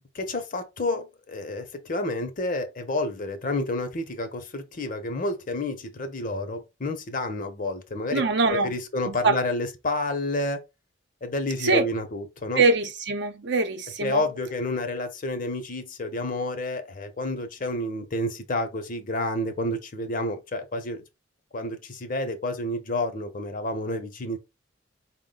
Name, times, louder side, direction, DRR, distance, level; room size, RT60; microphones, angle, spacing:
voice 1, 0.0-8.2 8.5-10.6 11.2-12.6 14.0-21.0 21.5-24.4, left 2 dB, 45° left, 0.7 m, -30 dB
voice 2, 8.1-8.7 9.1-9.4 11.6-11.8 12.6-14.2, right 3 dB, 65° right, 0.7 m, -23 dB
4.6 x 2.1 x 3.7 m
head